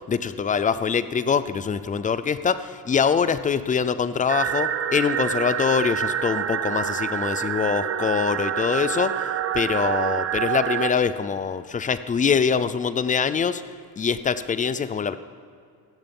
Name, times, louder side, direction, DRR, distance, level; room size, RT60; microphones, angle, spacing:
voice 1, 0.0-13.6 14.0-15.2, left 6 dB, 20° left, 14 dB, 0.4 m, -24 dB
sound 1, 4.3-10.9, right 9 dB, 40° right, 0.7 m, -27 dB
17.0 x 16.0 x 5.3 m, 2.4 s
cardioid pair, 180°, 37 cm